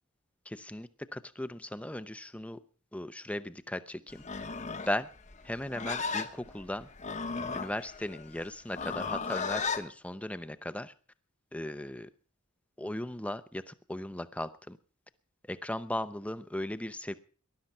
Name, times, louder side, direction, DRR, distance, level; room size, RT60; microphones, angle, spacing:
voice 1, 0.5-2.6 2.9-4.2 4.9-5.1 5.4-6.9 7.5-10.9 11.5-12.1 12.8-14.8 15.5-17.1, left 1 dB, 5° left, 13 dB, 0.6 m, -37 dB
Livestock farm animals working animals, 4.2-9.9, left 5 dB, 35° left, 1.1 m, -35 dB
19.5 x 12.0 x 5.5 m, 0.43 s
head